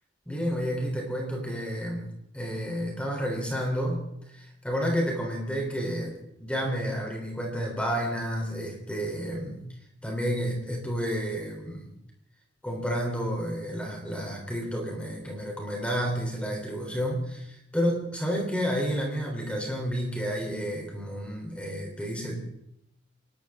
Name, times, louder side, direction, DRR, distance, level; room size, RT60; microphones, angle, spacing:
voice 1, 0.3-4.1 4.3-9.7 10.0-11.9 12.6-22.4, equal, 5° left, 0 dB, 3.7 m, -30 dB
29.0 x 12.5 x 3.7 m, 0.80 s
head